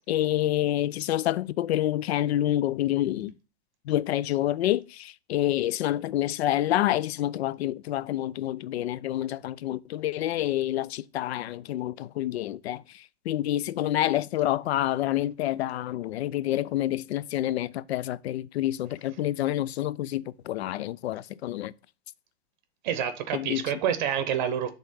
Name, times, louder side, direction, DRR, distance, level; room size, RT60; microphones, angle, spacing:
voice 1, 0.1-3.3 3.9-21.7 23.3-23.7, left 13 dB, 85° left, 0.5 m, -28 dB
voice 2, 22.8-24.7, right 9 dB, 50° right, 0.7 m, -28 dB
5.5 x 3.5 x 5.4 m
supercardioid pair, 150°, 31 cm